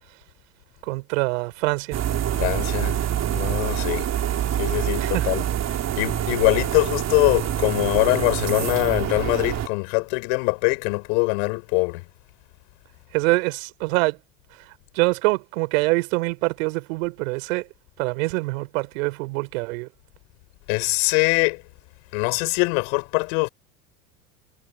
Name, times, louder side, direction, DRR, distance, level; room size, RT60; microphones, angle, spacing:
voice 1, 0.8-2.0 5.0-5.3 13.1-14.2 14.7-17.7 18.0-19.9, right 25 dB, 65° right, 4.1 m, -25 dB
sound 1, 1.9-9.7, right 10 dB, 40° right, 3.4 m, -26 dB
voice 2, 2.4-3.0 3.3-4.1 4.6-5.4 6.0-12.0 20.7-21.6 22.1-23.5, left 36 dB, 60° left, 5.8 m, -23 dB
hypercardioid pair, 80°, 43 cm